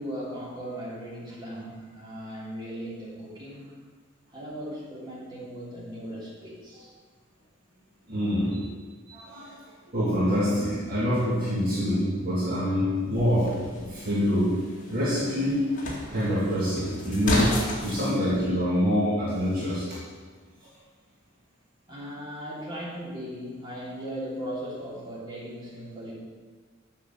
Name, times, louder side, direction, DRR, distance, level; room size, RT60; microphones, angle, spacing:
voice 1, 0.0-3.7 4.3-6.9 8.1-8.3 21.9-26.1, equal, 25° right, -6 dB, 3.0 m, -38 dB
voice 2, 8.1-8.8 9.1-9.6 9.9-15.6 16.1-20.0, equal, 50° right, -7 dB, 2.0 m, -26 dB
sound 1, 13.1-18.1, left 1 dB, 40° left, 1.9 m, -33 dB
7.6 x 6.0 x 7.0 m, 1.5 s
head